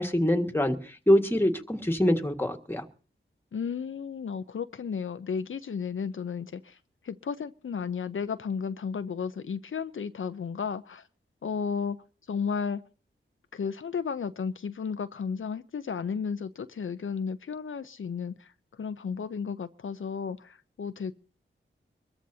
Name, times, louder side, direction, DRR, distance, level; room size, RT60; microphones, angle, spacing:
voice 1, 0.0-2.8, left 1 dB, 10° left, 1.7 m, -25 dB
voice 2, 3.5-6.8 7.0-11.1 11.4-12.0 12.3-12.8 13.5-18.5 18.8-21.1, left 6 dB, 75° left, 0.6 m, -33 dB
24.0 x 14.0 x 2.8 m
wide cardioid pair, 60°, 21 cm